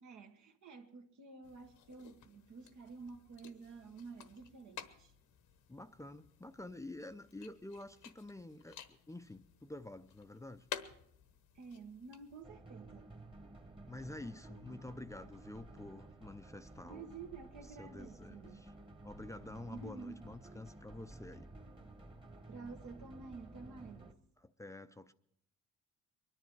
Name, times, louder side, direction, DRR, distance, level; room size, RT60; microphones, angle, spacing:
voice 1, 0.0-5.1 11.5-13.1 16.8-18.6 19.7-20.3 22.5-24.1, right 4 dB, 75° right, 1.6 m, -51 dB
sound 1, 1.4-12.4, left 9 dB, 80° left, 1.2 m, -53 dB
voice 2, 5.7-10.7 13.9-17.1 17.6-18.7 19.0-21.5 24.4-25.1, left 2 dB, 10° left, 0.5 m, -49 dB
sound 2, 12.4-24.1, right 2 dB, 15° right, 1.3 m, -54 dB
23.0 x 10.5 x 4.6 m
cardioid pair, 90°, 30 cm